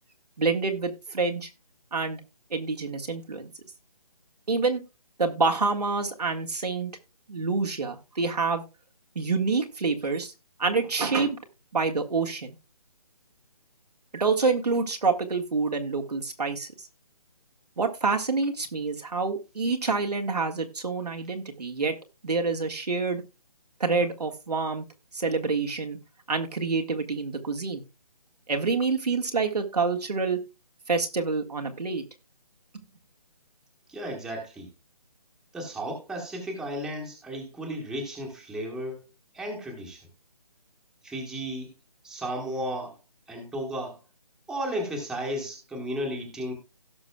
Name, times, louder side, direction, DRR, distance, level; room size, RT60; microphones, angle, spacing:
voice 1, 0.4-1.5 1.9-2.2 2.5-3.5 4.5-4.8 5.2-6.9 7.3-8.6 9.1-10.3 10.6-11.4 11.7-12.5 14.1-16.7 17.8-21.9 22.2-23.2 23.8-24.8 25.1-26.0 26.3-27.8 28.5-30.4 30.9-32.0 32.7-32.8, right 4 dB, 80° right, 1.7 m, -27 dB
voice 2, 33.9-34.7 35.5-39.0 39.3-40.0 41.0-41.7 42.0-43.0 43.3-44.0 44.5-46.5, equal, 5° right, 1.3 m, -34 dB
17.0 x 6.1 x 2.3 m
figure-of-eight pair, 155°, 20 cm